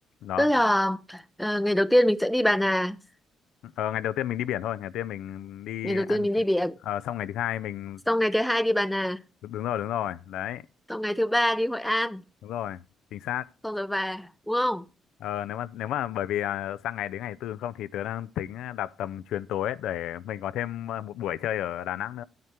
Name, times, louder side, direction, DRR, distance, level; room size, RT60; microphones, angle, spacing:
voice 1, 0.4-3.0 5.8-6.8 8.1-9.2 10.9-12.2 13.6-14.9, equal, 5° left, 0.5 m, -24 dB
voice 2, 3.6-6.3 6.9-8.0 9.4-10.6 12.4-12.8 13.1-13.5 15.2-22.2, left 11 dB, 85° left, 0.4 m, -32 dB
9.4 x 8.0 x 4.4 m
cardioid pair, 90°, 0 cm